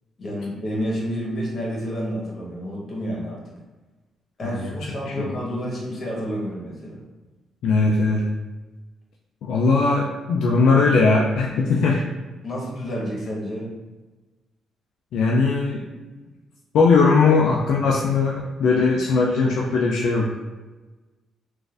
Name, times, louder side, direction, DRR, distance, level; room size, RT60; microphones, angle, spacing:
voice 1, 0.2-3.4 4.4-7.0 12.4-13.7 17.2-17.4, equal, 45° left, -3 dB, 1.2 m, -29 dB
voice 2, 4.4-4.7 5.1-5.3 7.6-8.2 9.4-12.0 15.1-15.9 16.7-20.5, left 4 dB, 80° left, -2 dB, 0.4 m, -19 dB
3.8 x 2.5 x 2.5 m, 1.2 s
cardioid pair, 90°, 0 cm